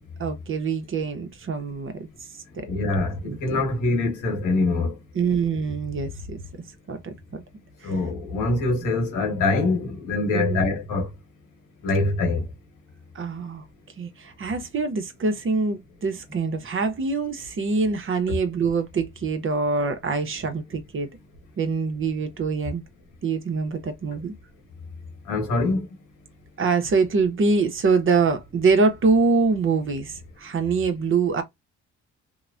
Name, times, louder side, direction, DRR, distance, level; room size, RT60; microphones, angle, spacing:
voice 1, 0.2-1.9 3.2-3.4 5.1-6.4 6.9-7.4 7.8-7.9 10.3-10.6 13.1-13.6 14.0-21.1 21.6-22.8 23.2-24.3 26.6-31.4, right 4 dB, 45° right, 0.8 m, -24 dB
voice 2, 2.6-4.9 7.8-11.1 11.8-12.4 25.3-25.9, left 2 dB, 85° left, 1.4 m, -24 dB
2.9 x 2.1 x 2.5 m
cardioid pair, 90°, 30 cm